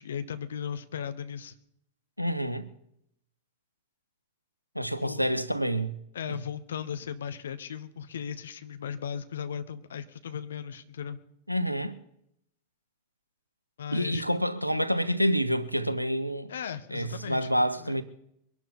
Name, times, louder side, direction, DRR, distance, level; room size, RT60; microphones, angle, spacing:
voice 1, 0.0-1.5 5.0-5.2 6.1-11.2 13.8-14.2 16.5-17.9, left 8 dB, 65° left, 1.0 m, -37 dB
voice 2, 2.2-2.7 4.7-5.9 11.5-12.0 13.9-16.5 16.9-18.0, equal, 90° right, 1.0 m, -28 dB
23.0 x 12.0 x 4.3 m
figure-of-eight pair, 90°, 0 cm